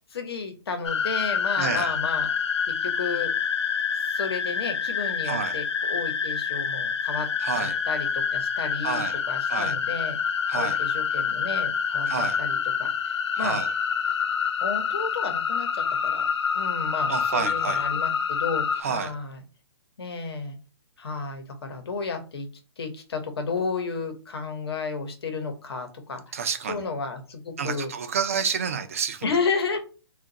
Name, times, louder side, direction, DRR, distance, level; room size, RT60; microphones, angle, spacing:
voice 1, 0.1-2.3 2.7-3.3 4.1-7.3 7.6-10.2 10.5-13.6 14.6-16.2 16.5-19.4 20.0-20.6 21.0-22.5 22.8-26.3 26.7-27.9 29.2-29.8, left 4 dB, 65° left, 1.1 m, -32 dB
sound 1, 0.8-18.8, left 7 dB, 80° left, 0.6 m, -27 dB
voice 2, 1.6-1.9 5.2-5.6 7.4-7.8 8.8-9.2 9.5-9.8 10.5-10.8 12.1-12.4 13.3-13.7 17.1-17.9 18.8-19.1 26.3-26.8 27.6-29.3, right 7 dB, 30° right, 0.4 m, -29 dB
2.7 x 2.5 x 3.9 m
hypercardioid pair, 175°, 14 cm